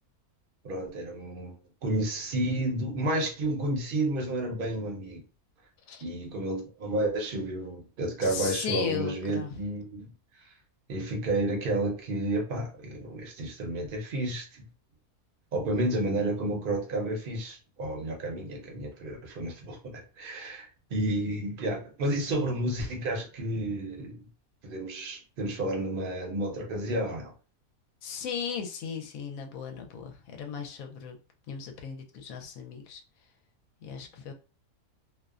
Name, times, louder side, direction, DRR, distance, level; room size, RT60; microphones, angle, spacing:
voice 1, 0.6-5.2 6.0-10.1 10.9-14.6 15.5-24.3 24.6-27.3, right 1 dB, 50° right, 0.7 m, -31 dB
voice 2, 8.2-9.6 28.0-31.2 31.5-33.0 33.8-34.3, left 7 dB, 70° left, 0.9 m, -36 dB
2.5 x 2.1 x 2.4 m
omnidirectional pair, 1.6 m